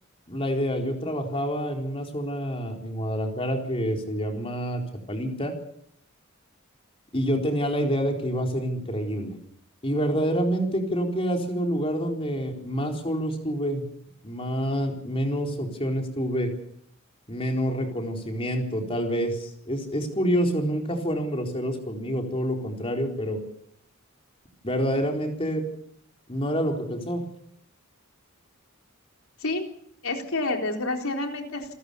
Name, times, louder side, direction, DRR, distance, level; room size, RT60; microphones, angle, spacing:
voice 1, 0.3-4.8 5.1-5.6 7.1-9.3 9.8-13.8 14.2-16.5 17.3-23.4 24.6-25.6 26.3-27.3, equal, 25° left, 2 dB, 4.1 m, -27 dB
voice 2, 30.0-31.7, left 2 dB, 80° left, 3 dB, 3.8 m, -28 dB
28.5 x 14.0 x 7.0 m, 0.69 s
head